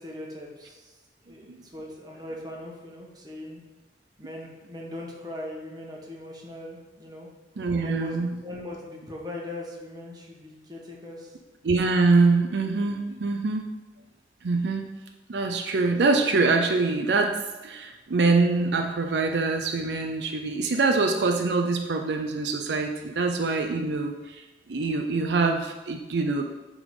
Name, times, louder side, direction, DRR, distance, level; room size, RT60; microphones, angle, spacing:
voice 1, 0.0-3.6 4.2-7.3 7.8-11.4, left 1 dB, 25° right, -2 dB, 1.3 m, -40 dB
voice 2, 7.6-8.4 11.6-13.7 14.4-14.9 15.3-26.4, right 3 dB, 70° right, 3 dB, 0.5 m, -24 dB
8.8 x 3.8 x 4.8 m, 1.1 s
head